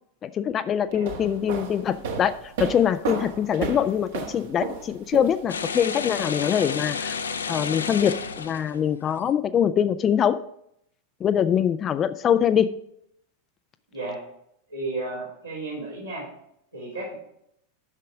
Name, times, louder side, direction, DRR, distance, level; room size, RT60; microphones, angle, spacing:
voice 1, 0.2-2.3 2.6-7.1 7.5-10.4 11.2-12.8, left 9 dB, 25° left, 12 dB, 0.4 m, -23 dB
sound 1, 0.9-5.7, right 5 dB, 55° right, 1.5 m, -33 dB
sound 2, 5.5-9.1, left 5 dB, 70° left, 0.7 m, -31 dB
voice 2, 14.7-16.2 16.7-17.1, right 2 dB, 85° right, -10 dB, 4.1 m, -33 dB
11.0 x 6.6 x 4.8 m, 0.72 s
figure-of-eight pair, 90°, 0 cm